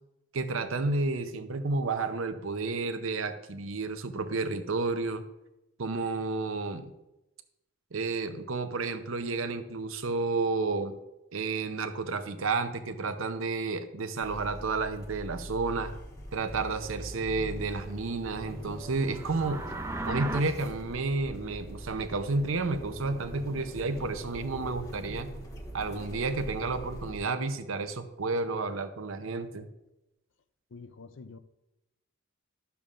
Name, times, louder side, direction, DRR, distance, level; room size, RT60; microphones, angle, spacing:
voice 1, 0.3-5.2 5.8-6.9 7.9-10.9 11.3-15.9 16.3-19.7 20.0-25.3 25.7-29.7, right 3 dB, 70° right, 0.7 m, -31 dB
sound 1, 14.2-27.2, equal, 15° left, 1.3 m, -43 dB
sound 2, 19.0-20.4, right 2 dB, 15° right, 0.4 m, -35 dB
voice 2, 30.7-31.4, left 4 dB, 55° left, 0.5 m, -46 dB
12.5 x 6.9 x 2.5 m
head